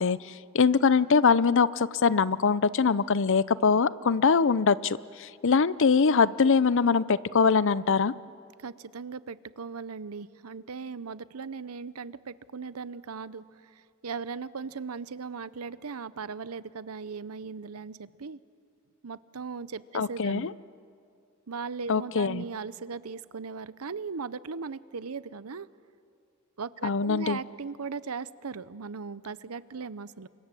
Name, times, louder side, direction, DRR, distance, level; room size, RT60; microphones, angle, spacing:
voice 1, 0.0-8.1 19.9-20.5 21.9-22.4 26.8-27.4, left 5 dB, 60° left, 18 dB, 0.6 m, -23 dB
voice 2, 8.6-13.4 14.0-18.4 19.0-20.5 21.5-25.7 26.6-30.3, right 5 dB, 90° right, 17 dB, 0.7 m, -38 dB
29.5 x 25.0 x 7.7 m, 2.4 s
head